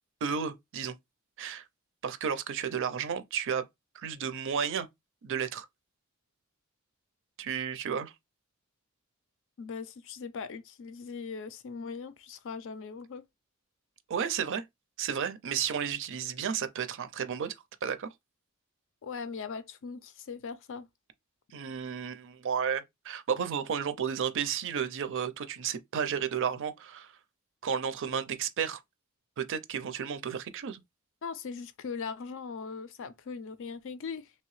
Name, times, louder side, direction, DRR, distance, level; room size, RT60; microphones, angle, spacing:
voice 1, 0.2-0.9 1.4-1.6 2.0-3.7 3.9-4.9 5.2-5.7 7.4-8.1 14.1-14.6 15.0-17.5 17.8-18.1 21.5-27.1 27.6-28.8 29.4-30.8, right 7 dB, 60° right, 0.4 m, -32 dB
voice 2, 9.6-13.2 19.0-20.9 31.2-34.3, left 5 dB, 60° left, 0.4 m, -40 dB
3.1 x 2.8 x 3.1 m
head